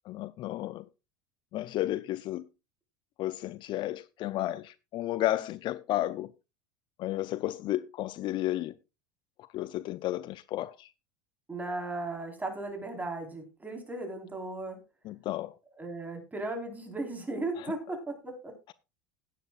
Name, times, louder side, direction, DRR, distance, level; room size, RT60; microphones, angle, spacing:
voice 1, 0.1-0.8 1.5-2.5 3.2-6.3 7.0-8.7 9.4-10.9 15.0-15.5 17.6-17.7, left 14 dB, 50° left, 0.5 m, -32 dB
voice 2, 11.5-14.8 15.8-18.5, right 2 dB, 15° right, 4.2 m, -36 dB
16.0 x 9.8 x 2.4 m
hypercardioid pair, 85°, 10 cm